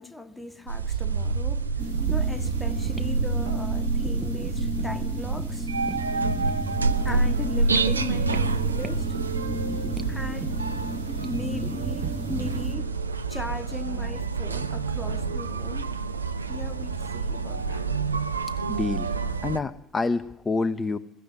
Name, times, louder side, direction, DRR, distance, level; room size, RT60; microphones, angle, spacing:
voice 1, 0.0-5.7 7.0-9.2 10.1-10.8 11.2-13.0 13.3-15.9 16.5-17.9, left 2 dB, 10° left, 1.9 m, -38 dB
sound 1, 0.7-19.6, right 4 dB, 85° right, 0.8 m, -28 dB
sound 2, 1.8-12.7, equal, 10° right, 1.7 m, -34 dB
voice 2, 18.7-19.2 19.4-21.0, left 3 dB, 25° left, 0.9 m, -27 dB
21.5 x 16.0 x 9.4 m
figure-of-eight pair, 60°, 0 cm